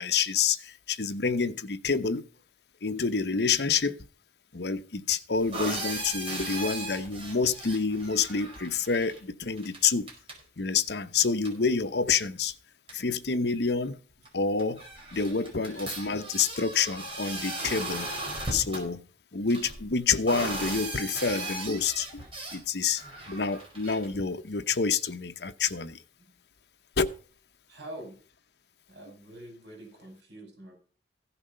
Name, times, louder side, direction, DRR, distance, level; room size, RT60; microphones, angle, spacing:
voice 1, 0.0-2.3 2.8-4.0 4.5-10.1 10.6-12.5 12.9-14.0 14.3-14.9 15.1-18.1 18.5-19.1 19.3-22.2 22.5-26.0 27.0-27.1, left 5 dB, 65° left, 0.8 m, -28 dB
sound 1, 5.3-9.2 9.6-9.8 10.1-10.4 11.4-11.5 12.5-12.6 12.9-13.0 14.2-14.3 14.6-18.8 19.5-22.6 22.9-24.1, right 2 dB, 30° right, 4.8 m, -37 dB
voice 2, 27.7-28.2 28.9-30.7, right 1 dB, 75° right, 6.0 m, -45 dB
15.5 x 7.0 x 5.6 m
head